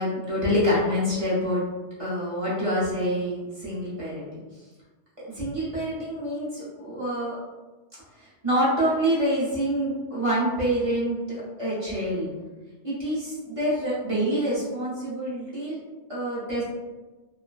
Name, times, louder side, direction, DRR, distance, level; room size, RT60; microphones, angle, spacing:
voice 1, 0.0-1.6 2.0-4.3 5.3-7.4 8.2-12.3 12.8-15.8 16.1-16.6, equal, 35° right, -9 dB, 0.7 m, -26 dB
3.1 x 2.1 x 2.4 m, 1.2 s
omnidirectional pair, 1.2 m